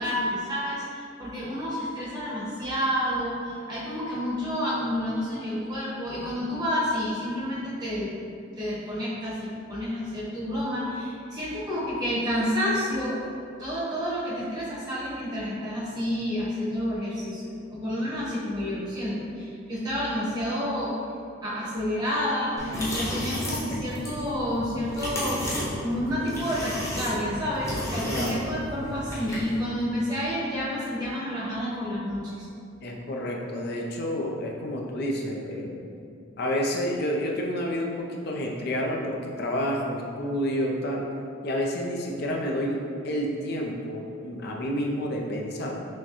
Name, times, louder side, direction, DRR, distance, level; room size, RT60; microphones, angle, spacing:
voice 1, 0.0-8.1 8.6-13.3 13.6-21.0 21.4-25.5 25.8-32.5, equal, 20° right, -9 dB, 1.2 m, -29 dB
sound 1, 22.6-29.6, equal, 15° left, 0.9 m, -33 dB
voice 2, 28.0-28.4 32.8-35.8 36.4-41.1 41.4-45.8, equal, 55° left, -1 dB, 0.5 m, -29 dB
6.2 x 2.2 x 2.9 m, 2.5 s
head